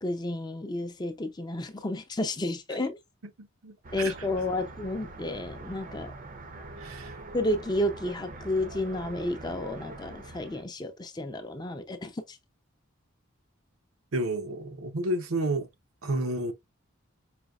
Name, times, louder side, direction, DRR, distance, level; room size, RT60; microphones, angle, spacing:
voice 1, 0.0-3.0 3.9-6.1 7.3-12.4, left 1 dB, 20° left, 0.4 m, -31 dB
voice 2, 3.4-4.1 6.8-7.2 14.1-15.7 16.0-16.5, right 1 dB, 75° right, 0.7 m, -31 dB
sound 1, 3.8-10.6, right 2 dB, 40° right, 0.6 m, -43 dB
5.1 x 2.7 x 2.3 m
head